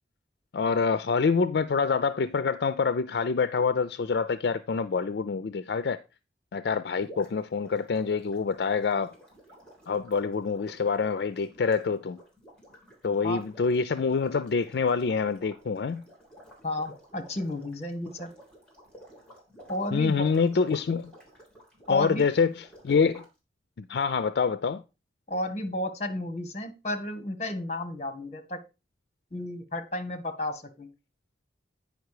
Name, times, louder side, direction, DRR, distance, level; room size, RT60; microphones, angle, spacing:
voice 1, 0.5-6.0 6.5-9.1 9.9-12.2 13.0-16.0 19.9-21.1 21.9-23.2 23.8-24.8, left 5 dB, 70° left, 0.4 m, -26 dB
sound 1, 7.0-23.3, equal, 5° left, 3.1 m, -53 dB
voice 2, 16.6-18.3 19.6-20.3 21.9-22.2 25.3-28.6 29.3-30.9, left 1 dB, 35° left, 1.3 m, -32 dB
9.2 x 5.3 x 4.8 m
head